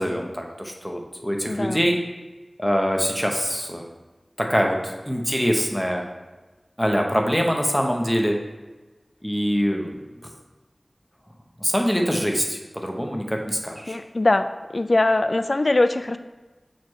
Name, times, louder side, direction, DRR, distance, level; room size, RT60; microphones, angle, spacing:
voice 1, 0.0-2.0 2.6-3.9 4.4-6.1 6.8-8.3 9.2-10.0 11.6-14.0, equal, ahead, 1 dB, 0.8 m, -24 dB
voice 2, 1.5-1.9 13.9-14.5 14.7-16.2, left 2 dB, 60° left, 10 dB, 0.3 m, -21 dB
6.7 x 3.1 x 4.6 m, 1.2 s
wide cardioid pair, 50°, 0 cm